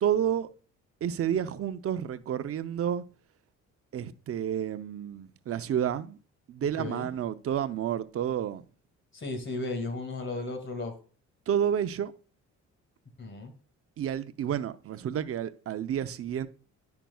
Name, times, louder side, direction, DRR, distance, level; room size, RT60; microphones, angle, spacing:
voice 1, 0.0-0.5 1.0-3.0 3.9-6.2 6.5-8.6 11.5-12.1 14.0-16.5, right 9 dB, 50° right, 0.6 m, -30 dB
voice 2, 6.8-7.1 9.1-10.9 13.2-13.5, left 2 dB, 40° left, 2.1 m, -35 dB
10.5 x 5.8 x 2.3 m
cardioid pair, 90°, 30 cm